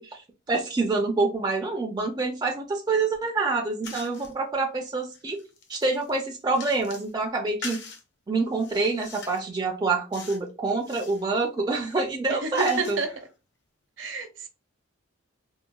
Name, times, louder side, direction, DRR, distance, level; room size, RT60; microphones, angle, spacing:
voice 1, 0.0-5.4 5.7-7.8 8.3-13.0, right 3 dB, 20° right, 0.3 m, -26 dB
sound 1, 3.8-4.3 4.9-7.1 7.6-8.0 8.5-9.5 10.1-10.5 10.8-11.2 11.8-13.3, left 5 dB, 55° left, 0.6 m, -42 dB
voice 2, 12.3-13.1 14.0-14.5, right 3 dB, 65° right, 0.7 m, -30 dB
3.8 x 2.1 x 2.2 m
head